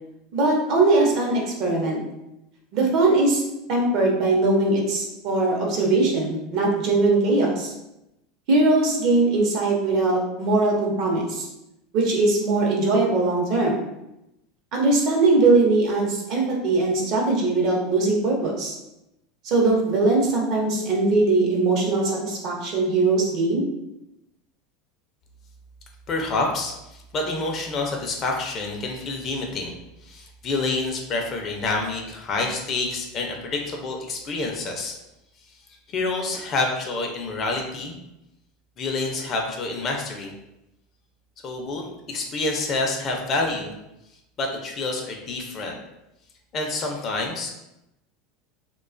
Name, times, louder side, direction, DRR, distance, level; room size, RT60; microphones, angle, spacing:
voice 1, 0.3-2.0 2.7-3.4 3.7-7.7 8.5-11.5 11.9-13.9 14.7-18.8 19.4-23.6, right 2 dB, 55° right, -1 dB, 0.7 m, -21 dB
voice 2, 26.1-29.8 30.0-35.0 35.9-38.0 38.8-40.3 41.4-43.8 44.4-45.8 46.5-47.5, left 3 dB, 35° left, 1 dB, 0.4 m, -28 dB
2.4 x 2.2 x 2.4 m, 0.89 s
supercardioid pair, 125°, 0 cm